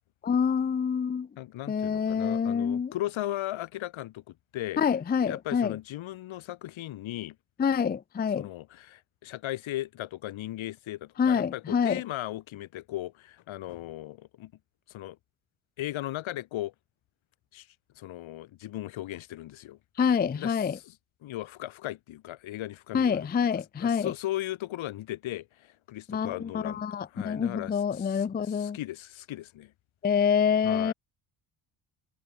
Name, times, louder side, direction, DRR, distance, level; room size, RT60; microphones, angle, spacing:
voice 1, 0.2-1.3 1.7-2.9 4.8-5.8 7.6-8.5 11.2-12.0 20.0-20.8 22.9-24.1 26.1-28.8 30.0-30.9, left 7 dB, 20° left, 0.5 m, -26 dB
voice 2, 1.4-4.8 5.2-7.4 8.3-14.5 14.9-15.2 15.8-16.7 17.5-17.7 17.9-21.0 21.2-23.3 23.8-29.7 30.6-30.9, left 15 dB, 70° left, 1.6 m, -37 dB
cardioid pair, 115°, 49 cm